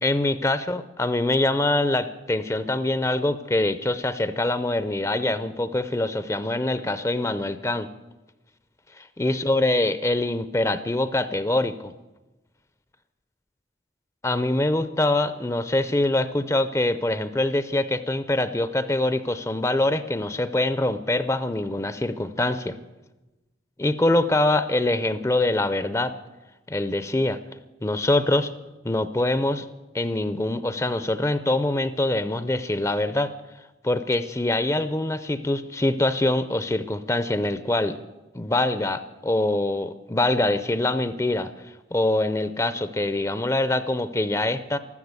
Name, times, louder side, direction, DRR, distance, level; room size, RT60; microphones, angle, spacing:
voice 1, 0.0-7.9 9.0-11.9 14.2-22.8 23.8-26.1 26.7-27.4 27.8-28.5 28.8-29.7 29.9-33.3 33.8-38.0 38.3-41.5 41.9-44.8, left 2 dB, 15° left, 13 dB, 0.5 m, -24 dB
13.5 x 13.0 x 8.1 m, 1.1 s
head